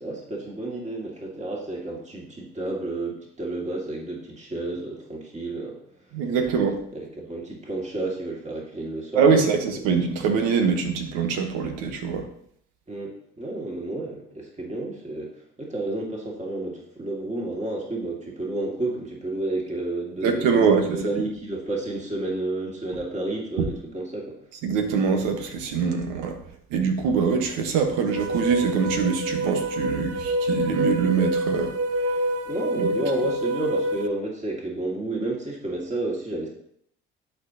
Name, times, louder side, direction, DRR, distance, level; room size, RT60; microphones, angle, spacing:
voice 1, 0.0-5.8 6.9-9.4 12.9-15.3 15.6-20.5 20.8-24.4 32.5-36.5, right 2 dB, 20° right, -1 dB, 2.1 m, -31 dB
voice 2, 6.1-6.8 9.1-12.3 20.2-21.1 24.6-26.4 26.7-31.7 32.1-32.2 32.8-32.9, right 5 dB, 75° right, 5 dB, 1.2 m, -23 dB
sound 1, 28.1-34.1, right 1 dB, 50° right, 0.8 m, -27 dB
11.5 x 4.5 x 2.8 m, 0.69 s
hypercardioid pair, 65°, 31 cm